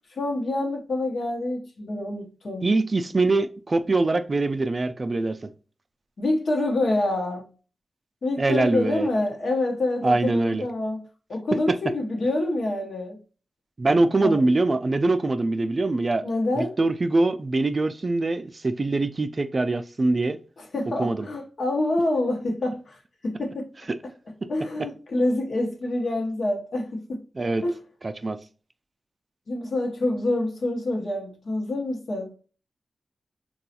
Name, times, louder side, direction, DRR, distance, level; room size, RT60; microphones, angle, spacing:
voice 1, 0.1-2.7 6.2-7.5 8.2-13.2 14.2-14.4 16.2-16.8 20.6-23.7 24.5-27.2 27.6-27.8 29.5-32.3, left 2 dB, 75° left, 0.8 m, -27 dB
voice 2, 2.6-5.5 8.4-9.1 10.0-10.7 11.7-11.8 13.8-16.2 16.6-20.4 21.0-21.3 23.9-24.0 27.4-27.6 28.0-28.4, right 2 dB, 40° right, 0.3 m, -23 dB
4.0 x 2.3 x 2.8 m
wide cardioid pair, 90°, 0 cm